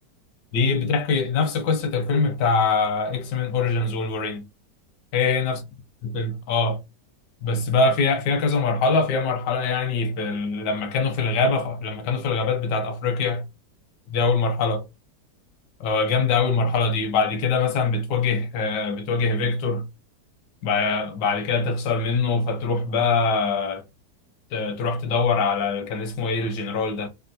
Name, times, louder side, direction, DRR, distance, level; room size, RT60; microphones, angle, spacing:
voice 1, 0.5-4.4 5.1-5.6 6.0-6.8 7.4-13.4 14.1-14.8 15.8-19.9 20.6-23.8 24.5-27.1, left 4 dB, 85° left, 1.3 m, -23 dB
3.5 x 2.2 x 2.6 m
omnidirectional pair, 1.9 m